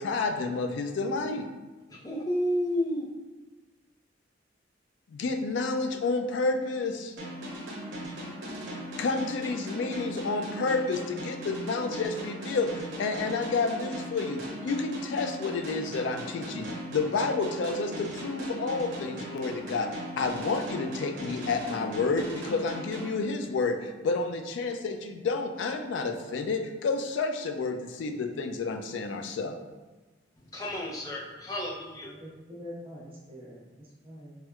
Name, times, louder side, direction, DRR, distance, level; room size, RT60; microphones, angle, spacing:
voice 1, 0.0-1.5 5.1-7.1 9.0-29.6, left 3 dB, 80° left, 7 dB, 0.3 m, -30 dB
voice 2, 1.9-3.1 30.5-32.1, equal, 20° left, -3 dB, 0.5 m, -31 dB
sound 1, 7.2-23.8, equal, 90° right, 0.8 m, -39 dB
voice 3, 32.0-34.4, equal, 30° right, -8 dB, 1.0 m, -45 dB
4.3 x 2.1 x 2.3 m, 1.2 s
head